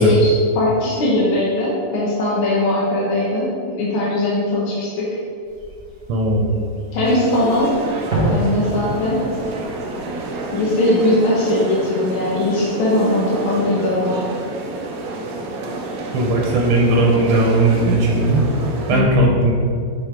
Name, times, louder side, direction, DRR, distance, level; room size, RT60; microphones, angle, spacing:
voice 1, 0.0-5.1 6.9-7.7 8.3-9.2 10.5-14.2 18.9-19.3, left 1 dB, 70° left, -6 dB, 1.8 m, -19 dB
Fireworks, 5.4-11.1, right 1 dB, 50° right, 2.3 m, -29 dB
voice 2, 6.1-6.5 16.1-18.4 18.9-19.5, right 2 dB, 90° right, -1 dB, 1.7 m, -17 dB
sound 1, 7.0-19.0, right 2 dB, 65° right, 0.9 m, -29 dB
7.8 x 4.8 x 3.6 m, 2.4 s
omnidirectional pair, 2.4 m